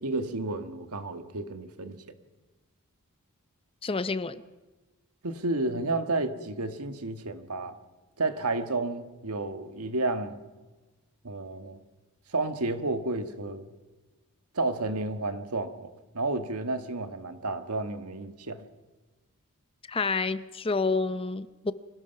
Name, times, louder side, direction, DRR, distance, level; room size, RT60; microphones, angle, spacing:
voice 1, 0.0-2.0 5.2-7.8 8.2-10.4 11.2-11.8 12.3-13.7 14.5-18.6, right 2 dB, 85° right, 1.6 m, -31 dB
voice 2, 3.8-4.4 19.9-21.7, left 4 dB, 25° left, 0.6 m, -29 dB
25.0 x 17.5 x 5.9 m
head